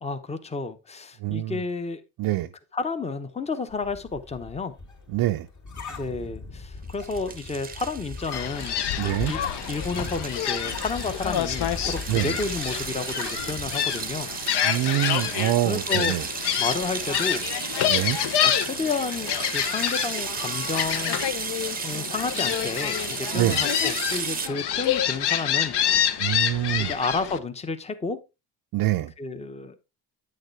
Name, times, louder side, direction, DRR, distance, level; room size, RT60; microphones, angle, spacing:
voice 1, 0.0-2.0 2.7-4.7 5.9-8.8 9.3-9.4 9.7-14.3 15.6-16.1 16.6-17.4 18.4-21.3 21.8-25.8 26.8-28.2 29.2-29.8, left 4 dB, 15° left, 0.8 m, -31 dB
voice 2, 1.2-1.6 2.2-2.5 5.1-5.5 9.0-9.3 12.1-12.3 14.6-16.3 17.9-18.2 23.3-23.6 26.2-26.9 28.7-29.1, right 15 dB, 55° right, 0.5 m, -25 dB
sound 1, 3.7-13.8, left 3 dB, 40° left, 2.2 m, -39 dB
sound 2, 6.9-24.5, right 6 dB, 20° right, 0.7 m, -34 dB
Gull seagull, 8.3-27.4, left 10 dB, 65° left, 0.9 m, -27 dB
9.1 x 6.5 x 3.3 m
cardioid pair, 115°, 43 cm